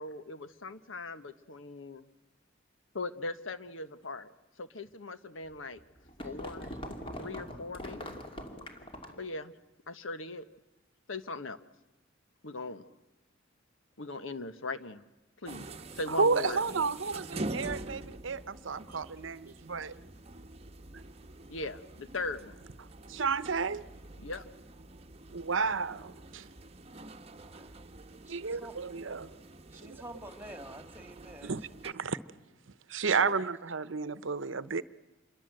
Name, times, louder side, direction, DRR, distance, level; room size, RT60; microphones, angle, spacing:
voice 1, 0.0-2.1 2.9-4.3 4.6-5.8 6.2-6.7 7.2-8.2 9.2-9.5 9.9-10.4 11.1-11.6 12.4-12.8 14.0-15.0 15.4-16.9 21.5-22.5 24.2-24.4 33.2-33.4, left 2 dB, 80° left, 12 dB, 1.3 m, -39 dB
sound 1, 5.5-9.3, left 1 dB, 30° left, 2.7 m, -42 dB
sound 2, 15.4-31.9, right 2 dB, 30° right, 1.0 m, -46 dB
voice 2, 16.1-20.0 23.1-23.8 25.3-26.5 28.3-29.3 29.9-30.0 31.4-32.2 32.9-34.8, right 5 dB, 70° right, 15 dB, 0.8 m, -32 dB
voice 3, 17.0-17.4 18.9-19.0 27.4-27.8 28.2-28.8 29.7-31.8 32.9-33.4, right 1 dB, 10° right, 8 dB, 2.3 m, -50 dB
27.5 x 23.0 x 7.8 m, 1.0 s
head